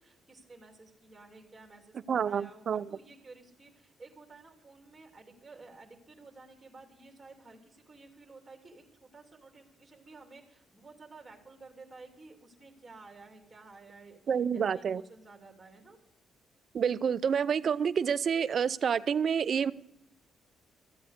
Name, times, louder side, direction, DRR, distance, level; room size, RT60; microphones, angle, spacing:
voice 1, 0.0-14.2 14.5-16.0, right 3 dB, 20° right, 2 dB, 2.8 m, -53 dB
voice 2, 2.1-2.9 14.3-15.0 16.7-19.7, right 7 dB, 55° right, 16 dB, 0.5 m, -28 dB
14.0 x 8.1 x 6.5 m, 0.82 s
cardioid pair, 90°, 0 cm